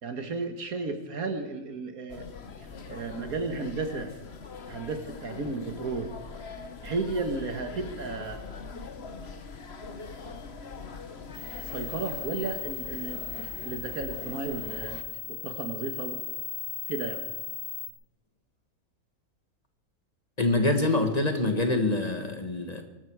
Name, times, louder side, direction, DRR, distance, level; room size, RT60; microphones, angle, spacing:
voice 1, 0.0-2.3 2.9-4.1 4.7-6.1 6.8-8.4 11.6-15.0 15.3-16.2 16.9-17.3, right 3 dB, 75° right, 6 dB, 1.9 m, -33 dB
sound 1, 2.1-15.0, left 4 dB, 45° left, 1.4 m, -42 dB
sound 2, 11.3-17.9, left 10 dB, 15° right, 2.6 m, -37 dB
voice 2, 20.4-22.8, left 2 dB, 25° left, 6 dB, 1.7 m, -25 dB
23.0 x 13.0 x 4.7 m, 1.0 s
omnidirectional pair, 1.5 m